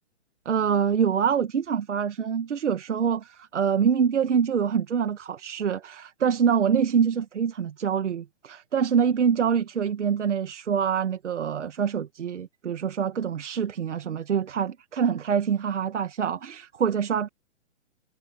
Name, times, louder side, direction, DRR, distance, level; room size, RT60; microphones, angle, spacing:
voice 1, 0.5-17.3, right 7 dB, 80° right, 1.8 m, -25 dB
hypercardioid pair, 135°, 35 cm